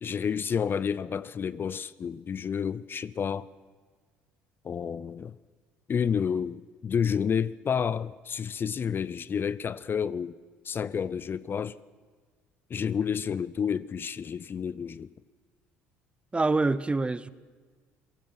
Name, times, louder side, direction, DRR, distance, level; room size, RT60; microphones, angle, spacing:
voice 1, 0.0-3.5 4.6-5.4 5.9-10.4 10.6-11.8 12.7-15.1, left 7 dB, 35° left, 0.6 m, -30 dB
voice 2, 16.3-17.3, right 3 dB, 20° right, 0.9 m, -25 dB
28.0 x 17.5 x 6.1 m
hypercardioid pair, 60°, 6 cm